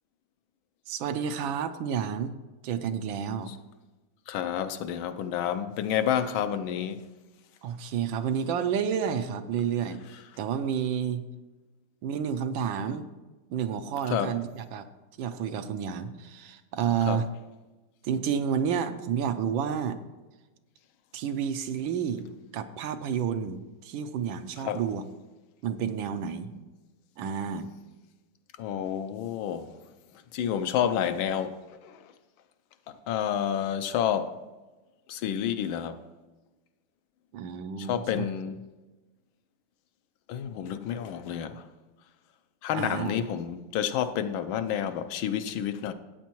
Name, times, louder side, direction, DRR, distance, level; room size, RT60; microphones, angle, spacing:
voice 1, 0.9-2.4 2.6-3.5 7.6-10.0 10.4-11.2 12.0-13.1 13.5-14.8 15.2-17.3 18.0-20.0 21.1-25.0 25.6-26.5 27.2-27.7 37.3-38.2 42.7-43.2, right 7 dB, 75° right, 1.3 m, -30 dB
voice 2, 4.3-7.0 14.1-14.3 17.1-17.2 24.6-24.8 28.6-29.7 30.3-32.0 33.1-34.3 35.1-36.0 37.8-38.6 40.3-41.6 42.6-45.9, left 9 dB, 75° left, 1.3 m, -29 dB
14.0 x 8.3 x 3.0 m
omnidirectional pair, 2.3 m